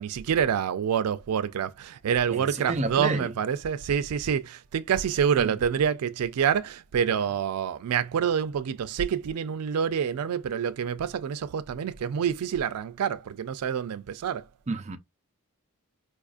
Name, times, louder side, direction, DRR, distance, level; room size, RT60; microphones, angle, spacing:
voice 1, 0.0-14.5, right 8 dB, 90° right, 0.4 m, -27 dB
voice 2, 2.3-3.3 5.4-5.6 14.7-15.0, right 3 dB, 30° right, 0.5 m, -30 dB
4.8 x 2.4 x 2.4 m
head